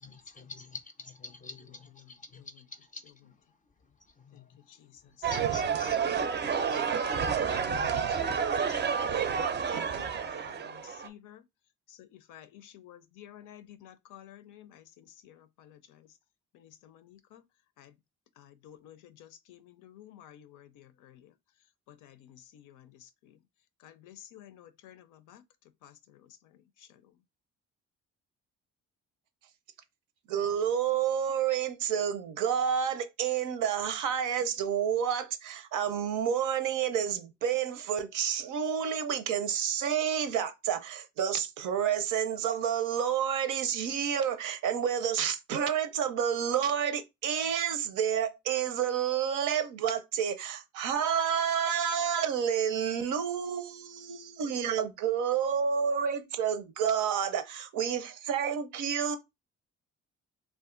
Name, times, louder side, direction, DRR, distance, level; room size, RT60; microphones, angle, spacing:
voice 1, 0.0-3.3 4.2-4.6 5.2-6.0 6.7-6.8 7.8-9.2, left 3 dB, 25° left, 0.4 m, -48 dB
voice 2, 2.0-2.6 4.3-6.3 6.8-11.4 11.9-16.1 16.5-17.4 17.8-17.9 18.4-21.3 21.9-23.4 23.8-25.4 25.8-27.1, left 11 dB, 90° left, 0.5 m, -53 dB
sound 1, 5.2-11.1, right 6 dB, 35° right, 0.4 m, -29 dB
voice 3, 30.3-59.2, right 8 dB, 85° right, 0.6 m, -29 dB
2.5 x 2.4 x 3.6 m
cardioid pair, 90°, 30 cm